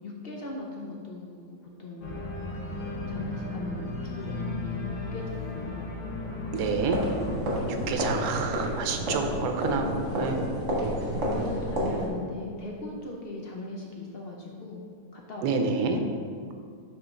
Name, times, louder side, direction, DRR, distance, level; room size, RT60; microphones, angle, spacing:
voice 1, 0.0-2.8 3.1-5.9 7.5-8.3 9.0-10.7 11.0-14.8 15.1-15.8, left 2 dB, 70° left, -1 dB, 0.5 m, -39 dB
Organ, 2.0-7.4, left 2 dB, 50° left, 1.2 m, -35 dB
sound 1, 6.5-12.1, equal, 70° right, 1.8 m, -30 dB
voice 2, 6.5-7.0 7.9-10.4 15.4-16.0, right 4 dB, 85° right, 5 dB, 1.2 m, -28 dB
5.6 x 3.7 x 5.1 m, 2.2 s
omnidirectional pair, 1.7 m